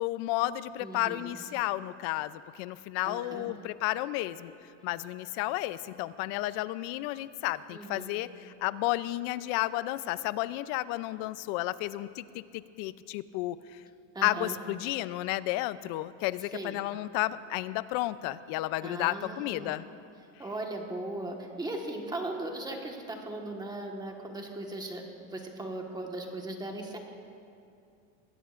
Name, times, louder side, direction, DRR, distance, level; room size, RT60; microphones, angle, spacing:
voice 1, 0.0-4.5 4.8-13.8 14.2-19.8, left 16 dB, 65° left, 15 dB, 0.6 m, -32 dB
voice 2, 0.8-1.3 3.0-3.5 7.7-8.1 14.1-14.6 16.5-16.8 18.8-19.7 20.4-25.0 25.3-27.0, right 2 dB, 10° right, 1 dB, 1.5 m, -38 dB
21.5 x 16.5 x 2.5 m, 2.5 s
cardioid pair, 140°, 36 cm